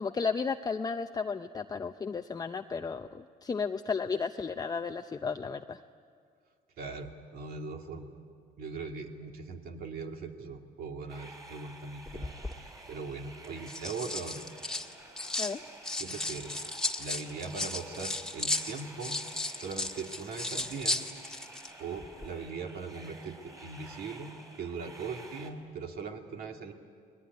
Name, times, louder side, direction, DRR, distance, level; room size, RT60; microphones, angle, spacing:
voice 1, 0.0-5.8 15.4-15.6, left 5 dB, 20° left, 6 dB, 0.7 m, -33 dB
voice 2, 6.8-8.1 8.6-12.3 12.6-14.4 16.0-16.7 17.0-19.2 19.5-21.0 21.8-26.7, right 4 dB, 60° right, 3 dB, 2.5 m, -40 dB
sound 1, 11.1-25.5, right 2 dB, 20° right, 4.6 m, -51 dB
sound 2, 12.1-12.6 13.4-15.5 15.8-21.7 22.0-22.3, left 2 dB, 5° left, 1.6 m, -35 dB
30.0 x 20.5 x 9.7 m, 2.2 s
cardioid pair, 110°, 17 cm